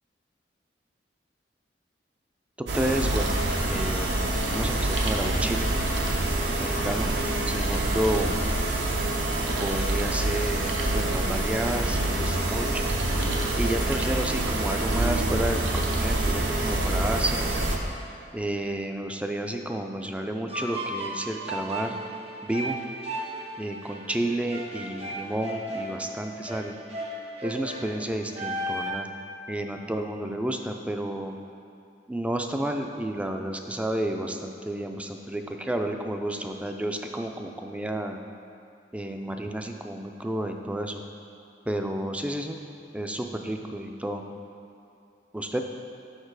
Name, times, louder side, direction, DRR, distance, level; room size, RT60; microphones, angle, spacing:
voice 1, 2.7-3.4 3.7-5.7 6.6-7.1 7.5-8.5 9.6-13.0 13.6-17.5 18.3-22.0 22.4-22.8 23.6-26.8 27.4-29.1 29.5-31.3 32.1-38.2 38.9-41.0 41.7-42.6 42.9-44.2 45.3-45.6, right 1 dB, 5° right, 4 dB, 0.3 m, -31 dB
sound 1, 2.7-17.8, right 1 dB, 70° right, 0.7 m, -26 dB
sound 2, 20.5-28.9, right 1 dB, 35° right, 0.7 m, -35 dB
6.5 x 5.3 x 4.7 m, 2.5 s
head